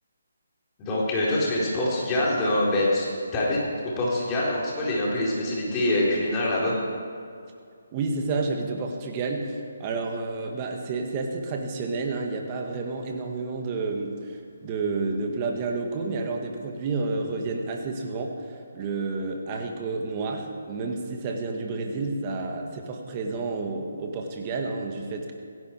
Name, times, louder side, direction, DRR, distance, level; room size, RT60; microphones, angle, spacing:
voice 1, 0.8-3.1 3.3-6.8, left 1 dB, 20° left, -5 dB, 4.3 m, -25 dB
voice 2, 7.9-25.3, right 3 dB, 30° right, 2 dB, 2.0 m, -30 dB
16.5 x 16.0 x 4.8 m, 2.4 s
figure-of-eight pair, 150°, 0 cm